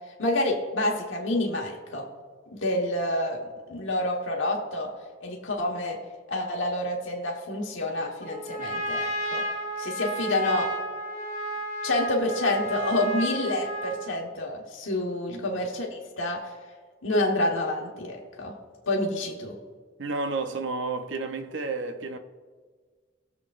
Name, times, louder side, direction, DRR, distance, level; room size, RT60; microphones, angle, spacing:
voice 1, 0.2-2.0 2.5-4.9 5.2-6.0 6.3-9.4 9.8-10.7 11.8-16.4 17.0-18.5 18.9-19.6, left 1 dB, 80° left, 1.4 m, -28 dB
Trumpet, 8.2-14.2, right 1 dB, 35° right, 1.9 m, -32 dB
voice 2, 20.0-22.2, right 3 dB, 70° right, 0.8 m, -31 dB
19.0 x 7.3 x 2.5 m
head